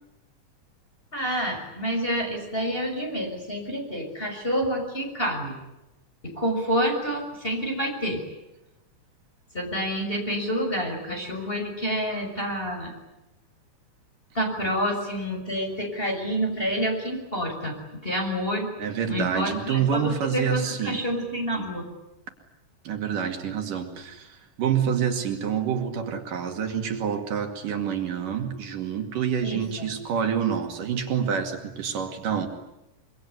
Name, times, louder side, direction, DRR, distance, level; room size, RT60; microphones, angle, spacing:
voice 1, 1.1-5.5 6.2-8.2 9.5-12.9 14.3-18.7 19.1-21.9 29.4-29.9, equal, 15° left, 2 dB, 6.5 m, -28 dB
voice 2, 18.8-21.0 22.9-32.5, right 8 dB, 75° right, 4 dB, 3.9 m, -27 dB
25.5 x 24.0 x 9.5 m, 0.97 s
omnidirectional pair, 3.8 m